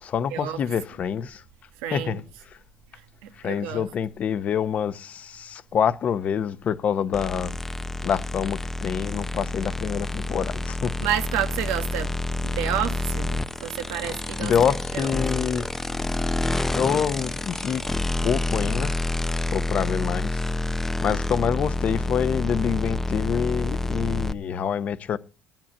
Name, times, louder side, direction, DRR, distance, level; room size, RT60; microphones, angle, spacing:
voice 1, 0.0-1.4 1.9-2.2 3.4-7.6 8.0-11.1 14.1-15.7 16.7-17.8 18.2-19.0 19.5-20.4 21.0-25.2, left 7 dB, 50° left, 0.9 m, -26 dB
voice 2, 1.8-2.2 3.2-3.9 11.0-12.2 12.4-14.5 14.9-15.1, right 11 dB, 90° right, 1.3 m, -30 dB
sound 1, 7.1-24.3, left 2 dB, 10° left, 0.7 m, -28 dB
9.0 x 8.8 x 8.7 m
supercardioid pair, 90°, 3 cm